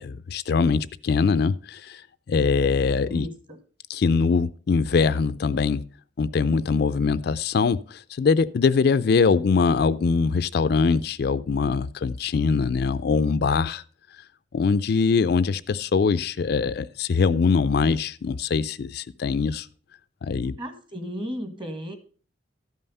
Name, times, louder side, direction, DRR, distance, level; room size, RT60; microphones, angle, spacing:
voice 1, 0.0-2.0 2.3-3.3 3.9-5.9 6.2-13.8 14.5-19.7 20.2-20.6, left 5 dB, 60° left, 0.4 m, -22 dB
voice 2, 3.1-3.6 20.6-22.0, equal, 30° right, 1.6 m, -34 dB
13.0 x 5.6 x 5.4 m
head